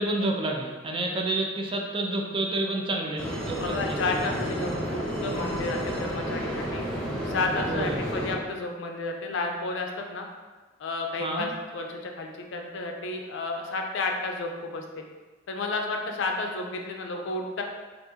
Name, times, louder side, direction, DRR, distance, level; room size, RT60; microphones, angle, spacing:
voice 1, 0.0-4.3 7.6-8.0 11.1-11.5, right 2 dB, 25° right, 1 dB, 0.3 m, -29 dB
sound 1, 3.2-8.3, equal, 5° left, 0.8 m, -31 dB
voice 2, 3.6-6.8 7.3-10.3 10.8-15.0 15.5-17.6, left 3 dB, 65° left, 2 dB, 0.4 m, -31 dB
3.5 x 2.5 x 2.7 m, 1.3 s
head